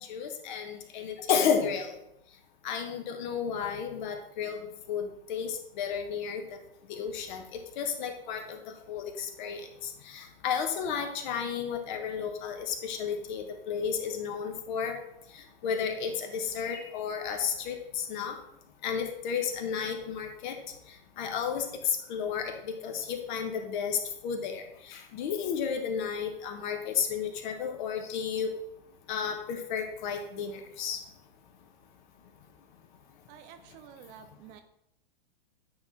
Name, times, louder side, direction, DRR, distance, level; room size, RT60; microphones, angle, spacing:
voice 1, 0.1-1.9 2.6-4.6 4.9-6.4 6.9-8.6 8.9-9.6 10.1-15.0 15.6-18.3 18.8-20.5 21.2-21.6 22.1-22.5 22.8-24.0 24.2-24.6 24.9-28.5 29.1-31.0, left 7 dB, 50° left, 5 dB, 1.3 m, -32 dB
voice 2, 33.3-34.6, right 9 dB, 30° right, 8 dB, 0.3 m, -50 dB
9.4 x 4.1 x 3.5 m, 0.78 s
hypercardioid pair, 110°, 30 cm